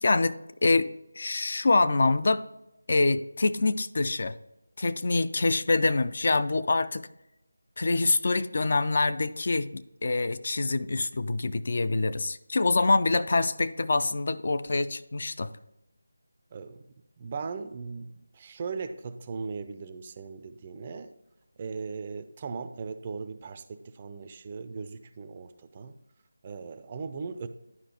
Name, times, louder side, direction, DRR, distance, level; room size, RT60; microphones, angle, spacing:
voice 1, 0.0-0.9 1.2-2.4 2.9-4.4 4.8-7.0 7.8-15.5, left 3 dB, 45° left, 13 dB, 0.4 m, -25 dB
voice 2, 16.5-16.9 17.2-21.1 21.6-25.9 26.4-27.5, right 5 dB, 25° right, 10 dB, 0.4 m, -38 dB
11.0 x 4.7 x 2.9 m, 0.91 s
figure-of-eight pair, 160°, 0 cm